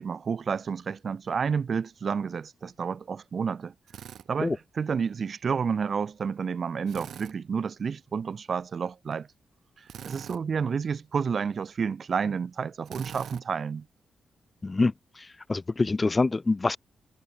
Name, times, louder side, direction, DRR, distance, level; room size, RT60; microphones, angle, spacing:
voice 1, 0.0-3.7 4.3-9.3 10.0-13.9, right 6 dB, 50° right, 0.6 m, -30 dB
Drill, 3.9-4.3 6.9-7.3 9.9-10.4 12.9-13.4, right 9 dB, 80° right, 0.8 m, -42 dB
voice 2, 14.6-16.8, left 3 dB, 25° left, 0.3 m, -26 dB
cardioid pair, 110°, 0 cm